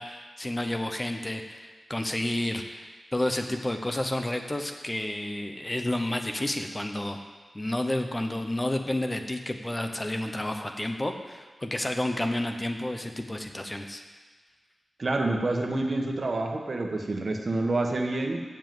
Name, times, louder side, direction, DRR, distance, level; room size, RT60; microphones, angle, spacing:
voice 1, 0.0-7.2 7.5-14.0, left 1 dB, 20° left, 5 dB, 0.8 m, -30 dB
voice 2, 15.0-18.4, right 2 dB, 50° right, 3 dB, 1.3 m, -28 dB
7.5 x 7.2 x 7.7 m, 1.4 s
wide cardioid pair, 75°, 0 cm